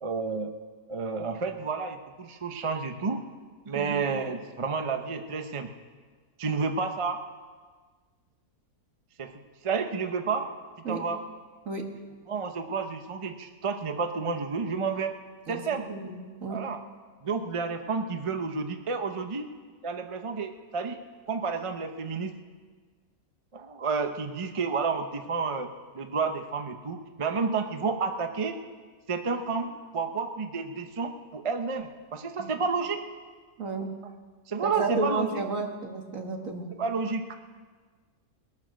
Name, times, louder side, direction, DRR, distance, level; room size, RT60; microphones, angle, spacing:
voice 1, 0.0-0.5 0.9-3.2 3.6-5.7 6.4-7.2 9.2-10.5 10.9-11.2 12.3-15.1 15.5-15.8 16.5-16.8 17.2-19.5 19.8-21.0 21.3-22.3 23.5-25.7 25.9-28.6 29.1-33.0 34.5-35.5 36.8-37.3, right 5 dB, 30° right, 6 dB, 0.6 m, -30 dB
voice 2, 15.9-16.6 32.4-32.5 33.6-33.9 34.6-36.7, right 3 dB, 60° right, 3 dB, 1.9 m, -32 dB
21.0 x 8.6 x 6.3 m, 1.5 s
omnidirectional pair, 1.6 m